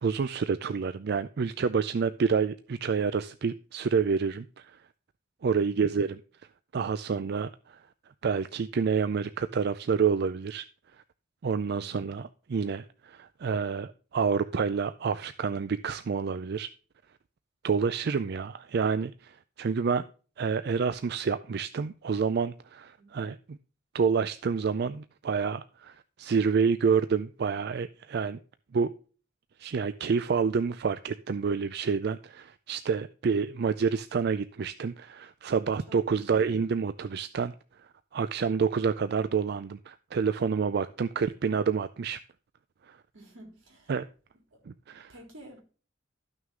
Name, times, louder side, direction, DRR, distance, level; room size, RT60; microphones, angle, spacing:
voice 1, 0.0-4.8 5.4-6.2 6.7-7.8 8.2-10.6 11.4-16.7 17.6-20.0 20.4-23.6 23.9-28.4 28.7-28.9 29.6-37.5 38.1-42.2 42.9-43.0 43.9-44.1 44.7-45.1, right 5 dB, 55° right, 0.4 m, -28 dB
voice 2, 5.4-5.8 11.7-12.1 23.0-23.1 35.9-36.5 43.1-43.9 44.5-44.6 45.1-45.6, right 1 dB, 85° right, 3.4 m, -52 dB
12.5 x 6.2 x 3.7 m
head